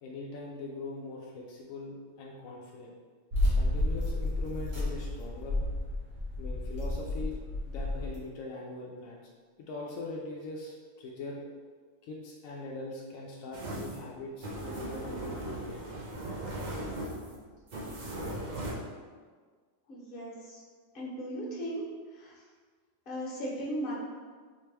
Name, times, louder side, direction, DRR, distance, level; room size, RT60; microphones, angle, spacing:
voice 1, 0.0-2.9 3.5-5.6 6.4-7.4 7.7-9.3 9.6-11.5 12.0-15.8, left 2 dB, 80° left, -2 dB, 1.0 m, -41 dB
sound 1, 3.3-8.2, left 1 dB, 75° right, 1.5 m, -31 dB
sound 2, 13.5-18.7, right 1 dB, 45° right, 0.6 m, -38 dB
voice 2, 19.9-20.6 20.9-21.8 22.1-22.3 23.1-24.0, right 1 dB, 45° left, -6 dB, 1.1 m, -37 dB
3.7 x 3.2 x 3.3 m, 1.6 s
omnidirectional pair, 1.4 m